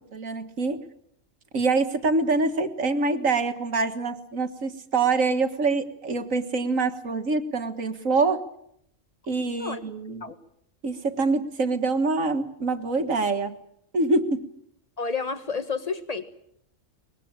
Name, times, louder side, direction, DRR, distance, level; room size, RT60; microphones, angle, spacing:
voice 1, 0.1-0.8 1.5-8.4 9.3-10.2 10.8-13.6 13.9-14.4, right 3 dB, 80° right, 7 dB, 2.1 m, -25 dB
voice 2, 15.0-16.2, left 5 dB, 30° left, 9 dB, 1.7 m, -30 dB
23.5 x 21.0 x 8.9 m, 0.74 s
omnidirectional pair, 1.4 m